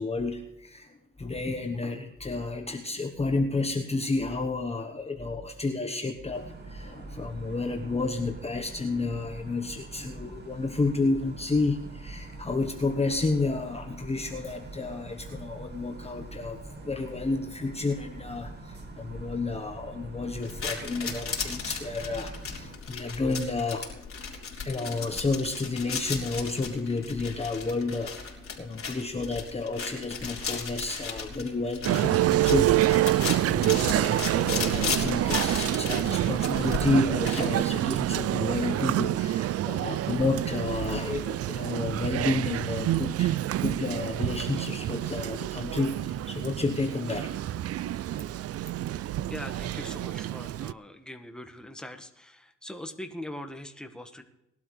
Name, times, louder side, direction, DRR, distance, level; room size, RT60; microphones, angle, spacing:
voice 1, 0.0-24.0 24.3-32.7 33.4-47.3 47.7-48.0, left 3 dB, 20° left, 4 dB, 1.1 m, -31 dB
sound 1, 6.3-22.8, right 2 dB, 35° right, 2.1 m, -44 dB
sound 2, 20.4-37.6, left 6 dB, 45° left, 3.7 m, -36 dB
Male speech man speaking, 31.8-50.7, right 13 dB, 55° right, 0.4 m, -27 dB
voice 2, 48.8-54.2, left 1 dB, 5° left, 5 dB, 1.4 m, -42 dB
20.0 x 12.0 x 3.3 m, 0.87 s
cardioid pair, 90°, 30 cm